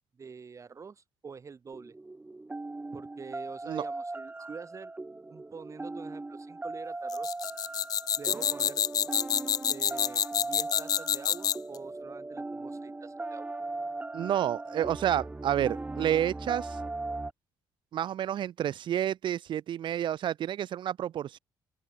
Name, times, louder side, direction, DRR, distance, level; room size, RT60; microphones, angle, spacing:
voice 1, 0.2-1.9 2.9-4.9 5.3-7.3 8.2-8.8 9.7-13.5, right 5 dB, 35° right, 5.0 m, -46 dB
sound 1, 1.7-17.3, right 2 dB, 15° right, 2.7 m, -39 dB
sound 2, 7.1-11.7, left 9 dB, 45° left, 0.3 m, -28 dB
voice 2, 14.1-16.8 17.9-21.4, right 10 dB, 65° right, 2.5 m, -30 dB
open air
cardioid pair, 90°, 9 cm